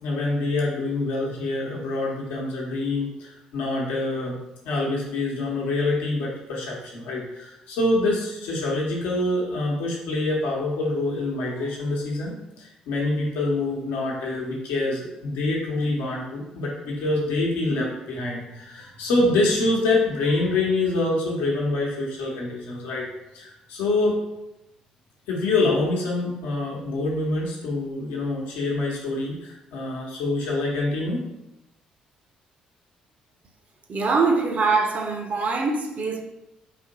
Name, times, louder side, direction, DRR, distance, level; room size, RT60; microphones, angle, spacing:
voice 1, 0.0-4.3 4.6-23.0 23.3-24.2 25.3-31.2, left 2 dB, 75° left, 0.9 m, -26 dB
voice 2, 33.9-36.2, right 4 dB, 45° right, 0.7 m, -23 dB
4.2 x 2.9 x 3.9 m
hypercardioid pair, 50°, 3 cm